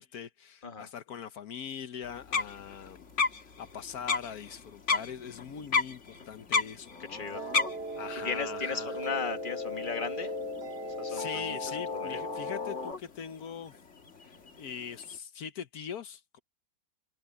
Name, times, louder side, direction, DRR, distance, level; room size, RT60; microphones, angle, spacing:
voice 1, 0.0-3.1 3.3-7.2 7.9-8.9 11.1-13.7 14.5-16.4, left 7 dB, 80° left, 1.5 m, -41 dB
sound 1, 2.0-15.2, left 4 dB, 50° left, 2.1 m, -36 dB
voice 2, 7.0-7.5 8.2-10.4 10.9-11.6 11.9-12.2, left 5 dB, 35° left, 1.8 m, -36 dB
sound 2, 7.3-12.9, left 1 dB, 45° right, 2.5 m, -37 dB
omnidirectional pair, 1.6 m